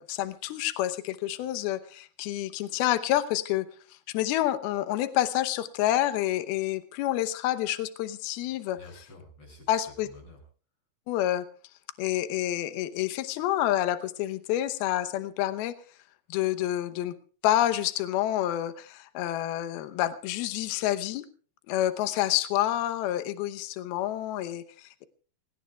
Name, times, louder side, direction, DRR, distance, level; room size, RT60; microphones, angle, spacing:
voice 1, 0.0-3.7 4.1-8.8 9.7-10.1 11.1-11.5 12.0-15.7 16.3-17.1 17.4-21.3 21.7-25.0, left 13 dB, 80° left, 11 dB, 2.3 m, -28 dB
voice 2, 8.8-10.4, left 2 dB, 30° left, 2 dB, 7.0 m, -50 dB
28.0 x 18.0 x 2.4 m, 0.39 s
omnidirectional pair, 5.6 m